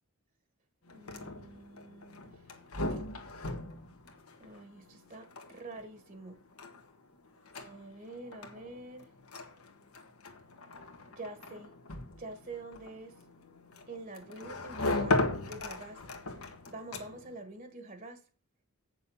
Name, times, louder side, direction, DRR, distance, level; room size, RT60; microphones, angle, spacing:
sound 1, 0.9-17.4, left 2 dB, 85° left, 1.6 m, -38 dB
voice 1, 0.9-2.4 2.9-3.0 4.4-6.4 7.6-9.1 11.1-11.7 12.2-13.2 13.9-16.0 16.7-18.2, right 2 dB, 40° right, 1.4 m, -46 dB
8.5 x 6.7 x 5.6 m
head